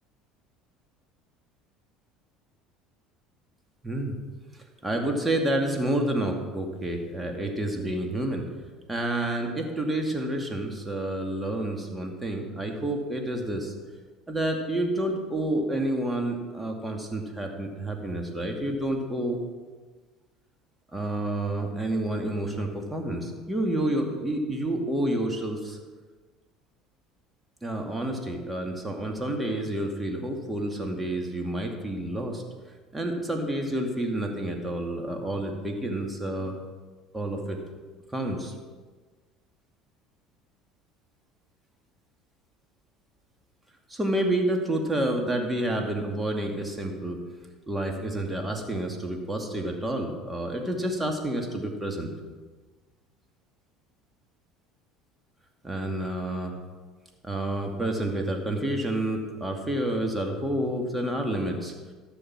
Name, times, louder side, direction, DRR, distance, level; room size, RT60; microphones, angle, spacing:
voice 1, 3.8-4.2 4.8-8.4 8.9-13.7 14.3-19.4 20.9-25.8 27.6-32.4 32.9-36.5 37.1-37.6 38.1-38.5 43.9-47.2 47.7-52.1 55.6-56.5 57.2-61.7, right 1 dB, 15° right, 2 dB, 2.4 m, -29 dB
14.5 x 6.6 x 6.3 m, 1.4 s
hypercardioid pair, 70°, 0 cm